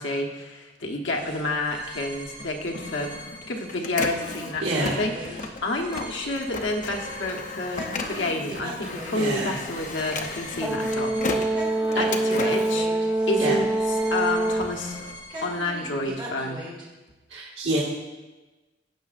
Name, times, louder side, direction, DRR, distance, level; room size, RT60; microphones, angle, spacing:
voice 1, 0.0-3.1 3.5-11.6 12.0-15.0 15.4-16.6, left 2 dB, 80° left, 2 dB, 1.0 m, -29 dB
sound 1, 1.1-16.8, equal, 25° right, 2.0 m, -41 dB
Printer, 2.4-13.8 14.2-16.1, left 3 dB, 45° left, 0.6 m, -36 dB
voice 2, 4.6-5.0 9.1-9.6 11.9-12.0 13.4-13.5 17.3-17.8, right 2 dB, 80° right, -8 dB, 1.7 m, -27 dB
Brass instrument, 10.6-14.8, right 1 dB, 10° right, 0.5 m, -25 dB
16.0 x 6.1 x 2.5 m, 1.2 s
head